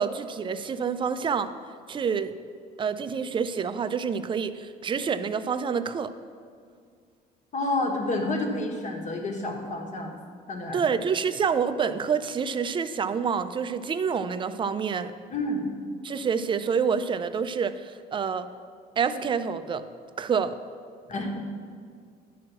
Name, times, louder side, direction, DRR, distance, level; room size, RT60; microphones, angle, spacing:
voice 1, 0.0-1.5 1.9-2.3 2.8-6.1 10.7-15.1 16.0-18.5 19.0-19.9 20.2-20.6, right 6 dB, 30° right, 11 dB, 0.4 m, -27 dB
voice 2, 7.5-10.1 10.5-10.8 15.3-15.6 21.1-21.3, left 2 dB, 45° left, 1 dB, 1.5 m, -29 dB
11.0 x 4.6 x 6.1 m, 2.1 s
cardioid pair, 110°, 17 cm